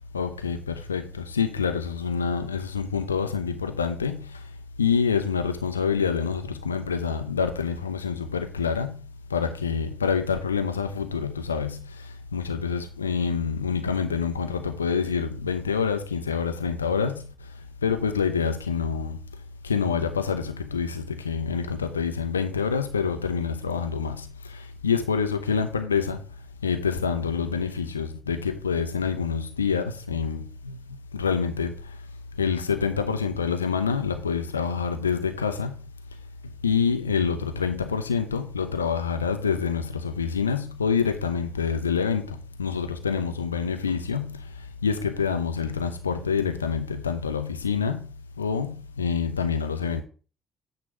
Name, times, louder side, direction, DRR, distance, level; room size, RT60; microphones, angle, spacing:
voice 1, 0.1-4.5 4.8-9.0 9.3-17.3 17.8-19.2 19.6-26.2 26.6-30.8 31.1-32.0 32.4-35.8 36.6-48.1 48.4-50.0, left 6 dB, 80° left, 0.6 m, -27 dB
9.1 x 3.1 x 5.7 m
figure-of-eight pair, 50°, 0 cm